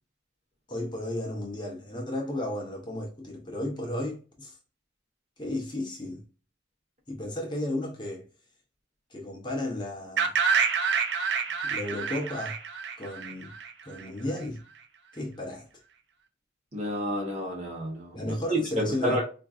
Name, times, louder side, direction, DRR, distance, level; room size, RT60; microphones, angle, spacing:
voice 1, 0.7-4.6 5.4-6.2 7.1-8.3 9.1-10.4 11.6-12.6 13.0-13.5 13.8-14.6 15.1-15.7 18.1-19.2, left 1 dB, 25° left, 0.6 m, -33 dB
sound 1, 10.2-14.0, right 6 dB, 65° right, 0.5 m, -27 dB
voice 2, 16.7-19.2, right 1 dB, 35° right, 1.2 m, -30 dB
4.3 x 2.5 x 2.4 m
head